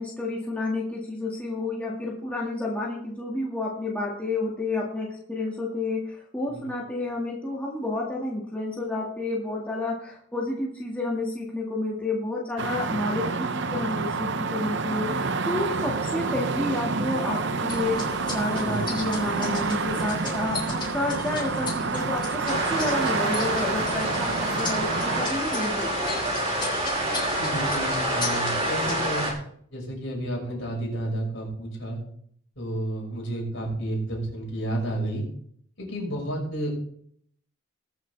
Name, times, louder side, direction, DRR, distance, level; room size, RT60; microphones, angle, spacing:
voice 1, 0.0-24.3 24.6-26.2, left 2 dB, 5° left, -5 dB, 2.0 m, -30 dB
sound 1, 12.6-25.3, right 4 dB, 55° right, 0.7 m, -28 dB
sound 2, 17.7-29.1, left 3 dB, 20° left, 3.3 m, -37 dB
sound 3, 22.4-29.3, right 1 dB, 25° right, 3.4 m, -28 dB
voice 2, 27.4-29.3 29.7-32.0 32.6-35.3 35.8-36.7, right 1 dB, 55° left, -2 dB, 6.1 m, -31 dB
21.5 x 7.4 x 3.5 m, 0.64 s
head